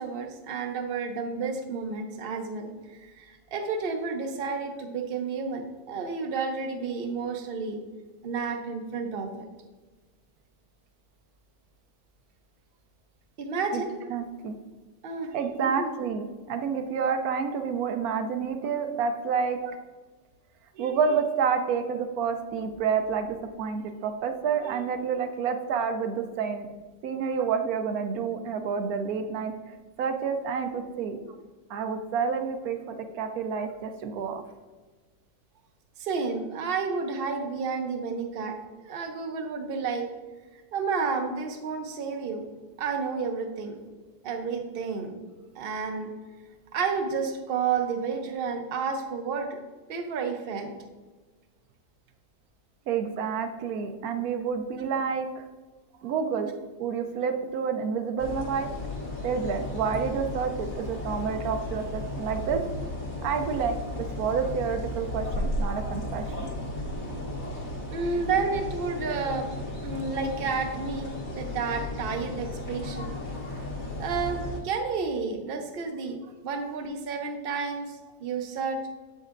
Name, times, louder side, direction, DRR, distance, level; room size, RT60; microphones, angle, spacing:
voice 1, 0.0-2.7 3.0-7.8 8.2-9.3 13.4-13.9 15.0-15.9 19.6-19.7 27.4-27.5 36.0-38.6 38.8-40.1 40.7-42.5 42.8-43.8 44.2-45.1 45.5-46.1 46.7-49.6 49.9-50.7 67.9-69.5 69.8-73.1 74.0-78.8, right 5 dB, 55° right, 5 dB, 0.6 m, -31 dB
voice 2, 14.1-14.5 15.3-19.6 20.8-26.7 27.0-31.2 31.7-34.4 52.9-55.4 56.0-56.5 56.8-58.7 59.2-62.6 63.2-63.8 64.2-66.5, right 6 dB, 70° right, 7 dB, 1.0 m, -29 dB
sound 1, 58.2-74.6, left 1 dB, 60° left, 1.5 m, -34 dB
7.7 x 5.2 x 2.5 m, 1.3 s
omnidirectional pair, 1.7 m